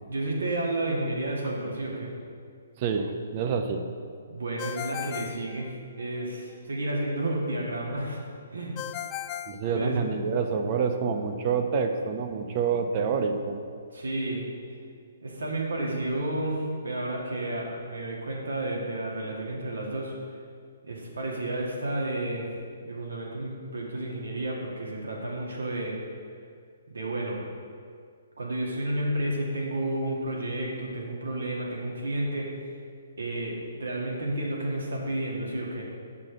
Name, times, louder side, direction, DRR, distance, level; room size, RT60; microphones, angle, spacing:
voice 1, 0.1-2.2 4.3-5.7 6.0-8.2 8.5-8.8 9.7-10.0 13.9-14.5 15.2-20.1 20.8-22.5 22.8-26.0 26.9-27.4 28.4-32.5 33.2-35.8, right 1 dB, 85° right, -2 dB, 1.9 m, -31 dB
voice 2, 2.8-3.8 9.5-13.6, right 5 dB, 40° right, 5 dB, 0.7 m, -27 dB
Ringtone, 4.6-6.3 8.8-10.4, left 11 dB, 25° left, 0.3 m, -37 dB
7.7 x 6.0 x 4.9 m, 2.1 s
hypercardioid pair, 145°, 0 cm